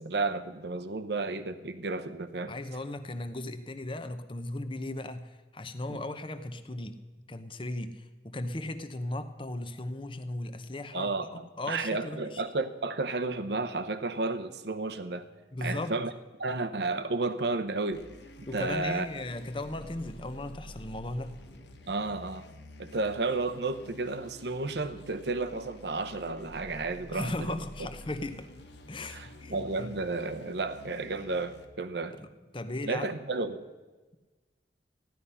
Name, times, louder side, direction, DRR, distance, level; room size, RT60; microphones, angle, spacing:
voice 1, 0.0-2.5 5.9-6.0 10.9-15.3 15.6-16.1 16.4-18.0 18.4-19.1 21.9-22.5 22.8-27.3 29.1-32.2 32.8-33.7, right 3 dB, 70° right, 9 dB, 0.9 m, -32 dB
voice 2, 2.5-7.0 7.3-11.1 11.6-12.4 15.5-15.9 18.5-21.4 27.1-28.5 28.9-29.9 32.2-32.3 32.5-33.1, left 1 dB, 30° left, 9 dB, 0.9 m, -37 dB
sound 1, 17.9-31.7, left 1 dB, 75° left, 1.3 m, -49 dB
15.5 x 11.5 x 5.6 m, 1.3 s
head